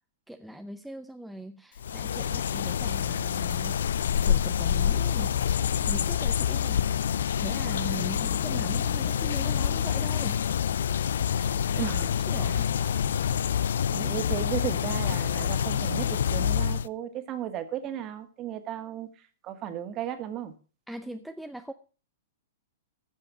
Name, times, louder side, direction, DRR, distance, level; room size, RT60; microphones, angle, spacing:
voice 1, 0.3-3.9 4.3-10.5 11.7-11.9 12.3-12.7 13.9-14.1 20.9-21.7, right 1 dB, ahead, 7 dB, 0.6 m, -40 dB
sound 1, 1.8-16.9, left 8 dB, 80° left, 0.4 m, -27 dB
voice 2, 11.8-12.2 14.0-19.1 19.4-20.5, right 10 dB, 30° right, 9 dB, 1.7 m, -35 dB
14.5 x 5.5 x 6.1 m, 0.37 s
hypercardioid pair, 140°, 0 cm